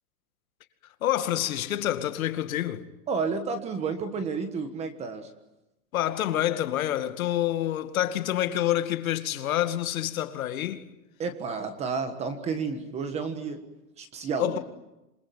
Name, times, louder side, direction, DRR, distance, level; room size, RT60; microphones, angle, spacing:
voice 1, 1.0-2.9 5.9-10.9 14.4-14.6, left 12 dB, 60° left, 2.3 m, -27 dB
voice 2, 3.1-5.3 11.2-13.6 14.0-14.6, right 5 dB, 15° right, 1.4 m, -31 dB
27.5 x 22.0 x 9.3 m
supercardioid pair, 170°, 48 cm